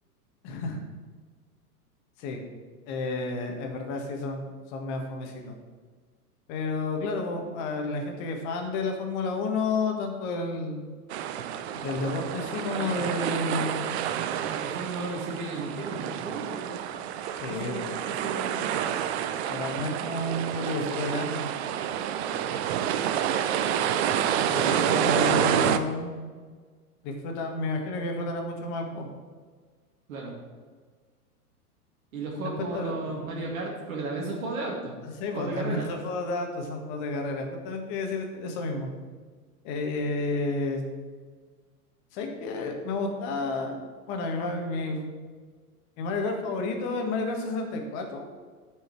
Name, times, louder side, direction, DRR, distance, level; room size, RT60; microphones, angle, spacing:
voice 1, 0.4-0.8 2.2-2.4 2.9-5.5 6.5-10.9 11.7-13.9 17.4-17.9 19.5-21.5 24.4-26.2 27.0-29.1 32.4-33.0 35.0-38.9 39.6-40.8 42.1-43.8 44.1-45.0 46.0-48.3, left 3 dB, 40° left, 3 dB, 1.7 m, -31 dB
sound 1, 11.1-25.8, right 9 dB, 45° right, 0.6 m, -28 dB
voice 2, 14.2-16.9 17.5-18.5 30.1-30.3 32.1-35.0 35.3-35.9, right 3 dB, 60° right, -2 dB, 2.1 m, -34 dB
9.7 x 5.5 x 4.7 m, 1.5 s
figure-of-eight pair, 100°, 47 cm